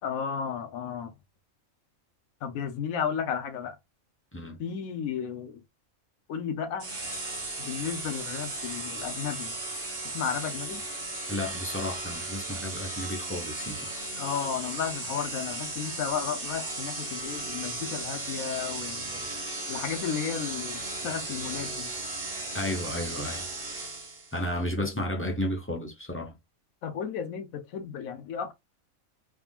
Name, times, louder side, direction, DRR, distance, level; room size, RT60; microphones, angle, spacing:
voice 1, 0.0-1.1 2.4-3.8 4.6-5.6 6.3-6.9 7.6-9.6 10.0-10.8 14.2-19.3 19.7-21.9 24.8-24.9 26.8-28.5, left 7 dB, 85° left, 1.2 m, -33 dB
sound 1, 6.8-24.4, right 2 dB, 45° right, 1.7 m, -36 dB
voice 2, 11.3-13.9 22.5-23.5 24.3-26.3, left 1 dB, 10° left, 0.6 m, -32 dB
3.6 x 3.4 x 2.4 m
omnidirectional pair, 1.4 m